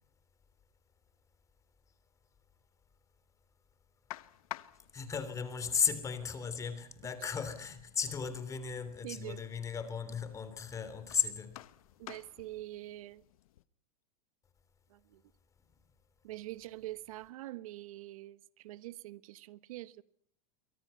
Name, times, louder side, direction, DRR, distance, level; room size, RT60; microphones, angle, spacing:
sound 1, 4.1-13.6, left 15 dB, 75° left, 1.3 m, -53 dB
voice 1, 4.9-11.6, left 6 dB, 15° left, 3.3 m, -35 dB
voice 2, 9.0-9.4 12.0-13.2 14.9-15.2 16.2-20.0, right 16 dB, 75° right, 1.2 m, -45 dB
27.5 x 24.0 x 5.6 m
supercardioid pair, 155°, 18 cm